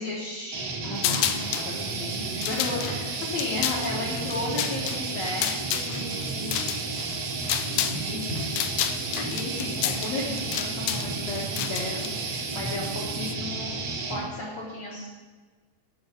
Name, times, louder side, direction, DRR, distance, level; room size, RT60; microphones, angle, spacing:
voice 1, 0.0-6.7 7.7-8.4 9.1-13.7 14.1-15.1, left 2 dB, 65° left, -4 dB, 1.7 m, -34 dB
sound 1, 0.5-14.2, right 3 dB, 70° right, 1.5 m, -32 dB
sound 2, 1.0-1.7 2.2-8.0 8.3-12.1, left 12 dB, 90° left, 2.0 m, -30 dB
sound 3, 1.3-13.4, right 9 dB, 85° right, 2.0 m, -41 dB
8.7 x 5.5 x 6.7 m, 1.4 s
omnidirectional pair, 4.7 m